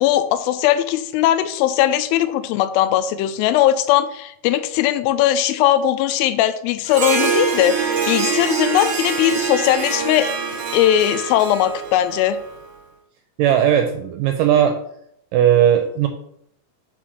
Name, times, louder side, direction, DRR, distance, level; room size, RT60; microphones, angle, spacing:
voice 1, 0.0-10.3 10.7-12.4, left 12 dB, 80° left, 12 dB, 2.2 m, -19 dB
Harp, 6.9-12.6, right 5 dB, 65° right, 1.5 m, -24 dB
voice 2, 13.4-14.8 15.3-16.1, right 10 dB, 80° right, 5 dB, 1.9 m, -17 dB
5.8 x 4.2 x 6.3 m, 0.71 s
omnidirectional pair, 4.5 m